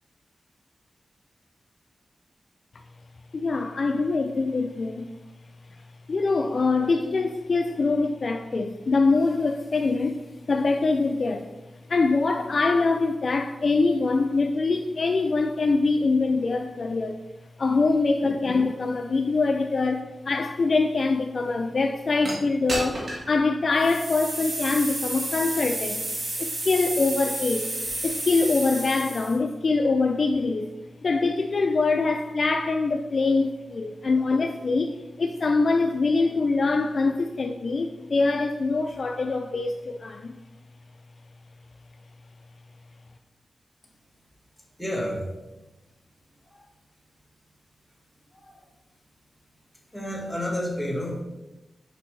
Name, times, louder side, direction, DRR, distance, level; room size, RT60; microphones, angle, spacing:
voice 1, 3.3-5.1 5.7-5.8 6.1-11.5 11.9-17.2 17.6-26.0 26.4-27.7 28.0-30.7 31.0-40.4, left 3 dB, 55° left, 0.3 m, -24 dB
sound 1, 22.2-22.3 22.7-23.3 23.8-29.4, right 1 dB, 55° right, 1.7 m, -31 dB
voice 2, 44.8-45.3 46.5-46.7 48.3-48.6 49.9-51.2, equal, 5° left, 1.5 m, -30 dB
6.5 x 5.1 x 3.2 m
wide cardioid pair, 95°, 0 cm